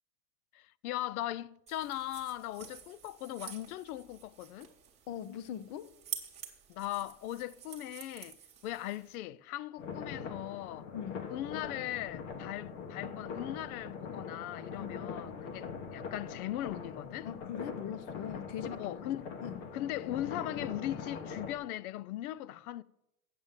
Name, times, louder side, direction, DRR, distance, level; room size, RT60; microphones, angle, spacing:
voice 1, 0.5-4.7 6.7-8.4 8.6-10.9 11.3-17.3 18.8-19.3 19.7-22.8, left 14 dB, 80° left, 0.6 m, -39 dB
sound 1, 1.7-9.2, right 8 dB, 15° right, 1.2 m, -48 dB
voice 2, 5.1-5.9 10.9-11.3 14.8-14.9 17.2-19.0 19.4-19.6, left 9 dB, 35° left, 0.5 m, -41 dB
sound 2, 9.8-21.5, left 6 dB, 60° left, 1.6 m, -42 dB
7.9 x 7.9 x 7.4 m
supercardioid pair, 160°, 43 cm